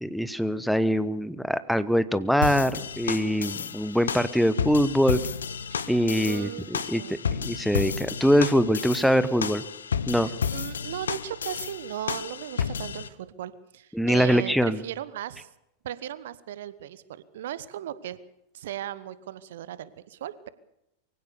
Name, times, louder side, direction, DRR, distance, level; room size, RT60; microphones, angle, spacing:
voice 1, 0.0-5.2 5.9-9.6 10.1-10.3 13.9-14.8, equal, ahead, 14 dB, 1.0 m, -23 dB
sound 1, 2.4-13.1, left 7 dB, 70° left, 0.9 m, -32 dB
voice 2, 6.2-7.2 10.2-15.5 15.8-18.2 18.5-20.5, right 11 dB, 55° right, 17 dB, 1.1 m, -37 dB
23.5 x 16.5 x 6.8 m, 0.86 s
figure-of-eight pair, 90°, 0 cm